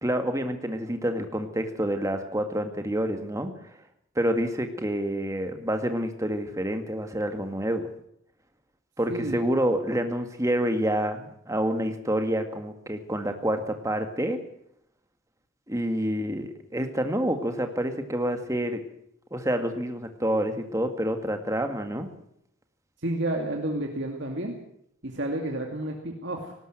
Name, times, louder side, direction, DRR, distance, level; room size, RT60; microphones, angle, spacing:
voice 1, 0.0-3.5 4.2-7.9 9.0-14.4 15.7-18.8 19.3-22.1, equal, 15° right, 6 dB, 2.0 m, -28 dB
voice 2, 9.1-9.4 23.0-24.5 25.0-26.5, right 1 dB, 55° right, 2 dB, 2.5 m, -30 dB
18.5 x 18.5 x 7.8 m, 0.72 s
head